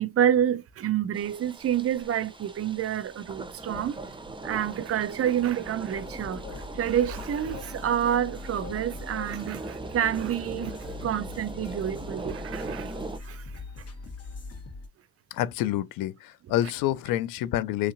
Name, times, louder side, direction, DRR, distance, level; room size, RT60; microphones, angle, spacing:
voice 1, 0.0-3.9 4.4-6.4 6.8-9.6 9.9-10.7 11.0-12.9, right 10 dB, 45° right, 0.5 m, -28 dB
sound 1, 1.1-13.2, right 3 dB, 15° right, 0.7 m, -40 dB
sound 2, 5.9-14.9, left 3 dB, 45° left, 1.7 m, -41 dB
voice 2, 15.3-17.9, left 13 dB, 75° left, 0.5 m, -28 dB
3.1 x 2.8 x 2.6 m
supercardioid pair, 70°, 34 cm